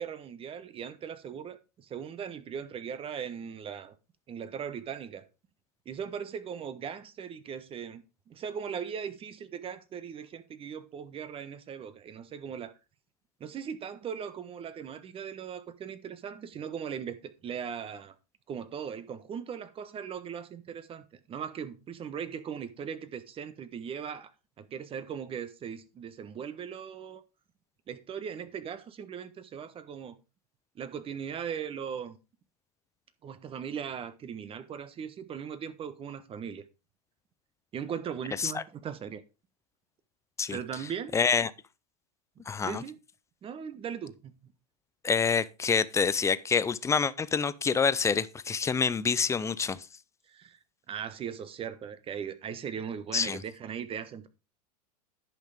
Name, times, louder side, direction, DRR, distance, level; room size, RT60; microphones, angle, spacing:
voice 1, 0.0-3.9 4.3-5.2 5.8-12.7 13.4-18.1 18.5-24.3 24.6-27.2 27.9-30.1 30.7-32.2 33.2-36.6 37.7-39.2 40.5-41.2 42.6-43.0 43.4-44.3 50.3-50.6 50.9-54.3, right 7 dB, 25° right, 1.2 m, -39 dB
voice 2, 41.1-41.5 42.5-42.8 45.0-49.8 53.1-53.4, left 6 dB, 15° left, 0.5 m, -27 dB
10.5 x 5.8 x 5.0 m
hypercardioid pair, 115°, 21 cm